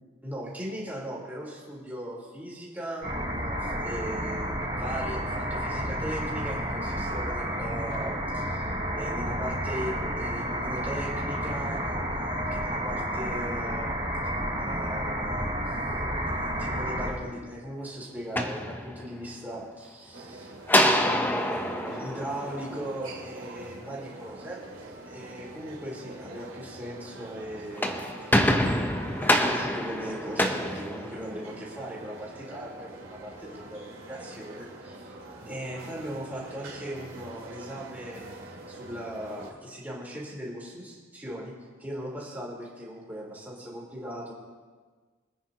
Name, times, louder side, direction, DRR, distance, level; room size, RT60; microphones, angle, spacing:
voice 1, 0.2-13.9 14.6-15.8 16.2-24.6 25.1-28.5 29.2-35.1 35.4-41.5 41.8-44.3, equal, 10° right, -5 dB, 3.7 m, -39 dB
sound 1, 3.0-17.1, equal, 40° right, 4.0 m, -31 dB
sound 2, 18.2-19.4 20.7-23.2 27.6-31.6, left 1 dB, 10° left, 0.8 m, -26 dB
sound 3, 20.1-39.5, right 2 dB, 80° right, 2.6 m, -44 dB
24.5 x 9.9 x 2.9 m, 1.4 s
head